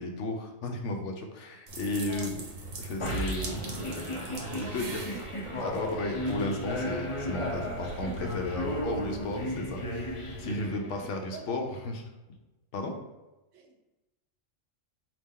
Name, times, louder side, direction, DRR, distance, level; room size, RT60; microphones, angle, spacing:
voice 1, 0.0-2.4 2.8-3.8 4.6-5.1 5.6-12.0 12.7-12.9, left 2 dB, 70° left, 3 dB, 0.9 m, -34 dB
sound 1, 1.7-10.7, right 3 dB, 90° right, 1.2 m, -42 dB
voice 2, 2.1-2.5 4.5-5.8 7.6-8.2 10.8-11.8 13.5-13.9, right 4 dB, 70° right, 2 dB, 1.0 m, -47 dB
sound 2, 3.0-11.3, left 1 dB, 35° left, 0.5 m, -35 dB
4.2 x 2.9 x 3.6 m, 1.1 s
omnidirectional pair, 1.4 m